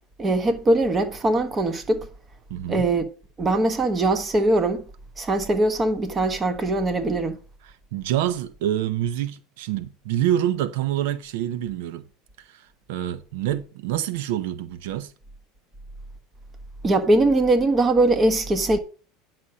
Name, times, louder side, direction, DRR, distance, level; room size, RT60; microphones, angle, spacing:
voice 1, 0.2-2.1 2.7-3.1 3.4-4.8 5.2-7.4 16.8-18.8, right 2 dB, 20° right, 1.3 m, -21 dB
voice 2, 2.5-2.9 7.6-12.0 12.4-15.1, right 11 dB, 75° right, 0.7 m, -27 dB
9.9 x 6.0 x 5.1 m
supercardioid pair, 145°, 0 cm